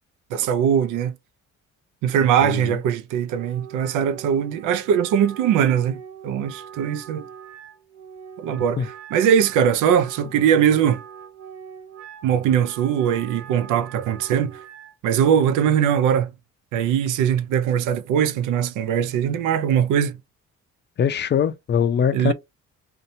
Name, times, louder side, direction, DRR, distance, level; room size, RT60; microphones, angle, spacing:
voice 1, 0.3-1.1 2.0-7.2 8.4-11.0 12.2-14.5 15.0-16.3 16.7-20.2 22.1-22.3, right 8 dB, 90° right, 0.5 m, -21 dB
voice 2, 2.4-2.8 8.8-8.9 21.0-22.3, left 8 dB, 35° left, 0.4 m, -22 dB
Wind instrument woodwind instrument, 3.3-14.9, right 8 dB, 60° right, 0.8 m, -42 dB
2.7 x 2.2 x 2.6 m
cardioid pair, 90°, 30 cm